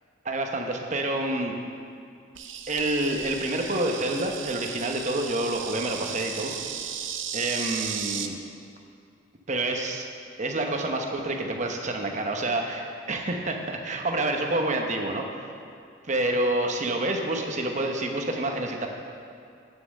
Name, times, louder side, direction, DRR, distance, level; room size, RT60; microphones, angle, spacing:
voice 1, 0.2-1.5 2.7-6.5 7.3-8.4 9.5-10.1 10.4-15.5 16.1-18.9, right 1 dB, 40° right, 3 dB, 0.9 m, -28 dB
Insect, 2.3-8.3, right 8 dB, 80° right, 0.6 m, -35 dB
9.3 x 6.8 x 6.4 m, 2.3 s
head